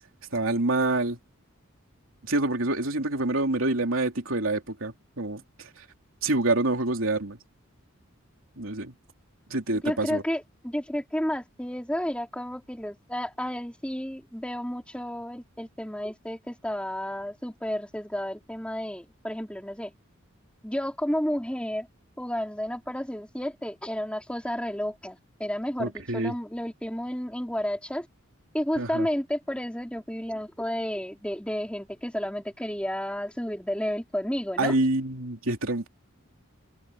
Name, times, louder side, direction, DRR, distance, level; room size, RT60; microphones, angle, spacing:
voice 1, 0.3-1.2 2.2-5.8 6.2-7.4 8.6-8.9 9.5-10.2 25.8-26.3 28.8-29.1 34.6-35.9, right 2 dB, 70° right, 3.2 m, -27 dB
voice 2, 9.8-19.9 20.6-21.9 22.2-28.1 28.5-34.7, equal, 5° left, 3.6 m, -31 dB
head